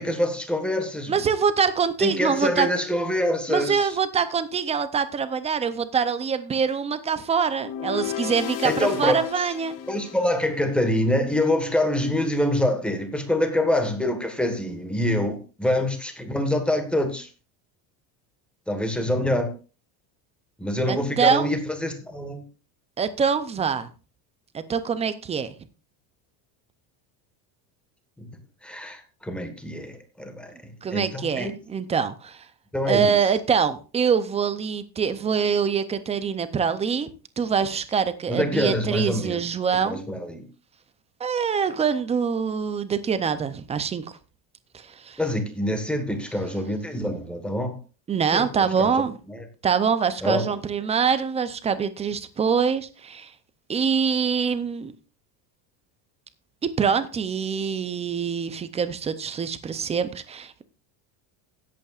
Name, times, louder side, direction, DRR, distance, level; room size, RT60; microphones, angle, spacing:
voice 1, 0.0-1.1 2.0-4.0 8.6-9.3 9.9-17.3 18.7-19.5 20.6-22.4 28.2-28.3 28.6-31.5 32.7-33.1 38.3-39.4 39.8-40.4 45.2-47.8 48.3-48.5 48.8-48.9 49.3-49.4 50.2-50.5, left 1 dB, ahead, 6 dB, 1.4 m, -25 dB
voice 2, 1.1-2.7 3.5-9.8 20.9-21.5 23.0-23.9 24.5-25.5 30.8-32.4 32.9-37.1 37.4-40.0 41.2-44.1 44.7-45.2 48.1-49.2 49.6-53.3 53.7-54.9 56.6-60.6, right 6 dB, 15° right, 12 dB, 0.5 m, -24 dB
sound 1, 7.6-10.8, left 10 dB, 45° left, 0.8 m, -34 dB
16.5 x 8.4 x 2.4 m, 0.33 s
cardioid pair, 160°, 44 cm